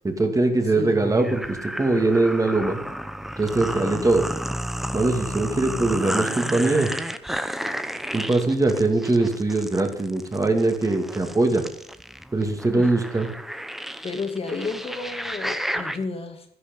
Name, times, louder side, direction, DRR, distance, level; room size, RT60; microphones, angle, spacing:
voice 1, 0.0-2.8 3.4-4.2 4.9-6.9 8.1-11.7 12.3-13.3, right 2 dB, 20° right, 4 dB, 2.5 m, -22 dB
voice 2, 0.6-1.0 3.6-4.1 12.7-12.9 14.0-16.5, left 4 dB, 35° left, 6 dB, 2.5 m, -32 dB
sound 1, 1.0-16.0, equal, ahead, 0.8 m, -32 dB
12.5 x 11.5 x 5.5 m, 0.70 s
cardioid pair, 110°, 17 cm